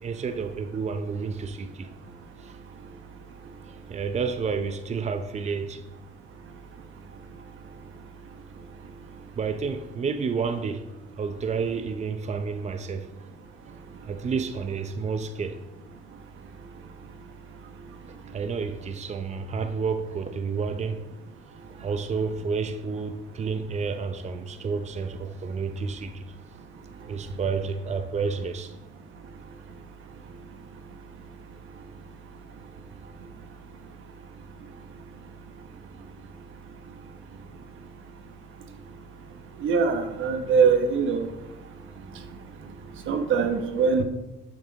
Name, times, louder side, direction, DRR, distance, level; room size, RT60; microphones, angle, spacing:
voice 1, 0.0-1.9 2.4-2.6 3.7-5.8 9.4-10.9 11.2-13.1 14.0-15.6 18.1-21.1 21.7-26.2 27.1-28.7, right 5 dB, 35° right, 0.7 m, -30 dB
voice 2, 39.6-41.3 43.1-44.0, right 5 dB, 80° right, 1.3 m, -22 dB
11.5 x 6.3 x 4.1 m
cardioid pair, 90°, 20 cm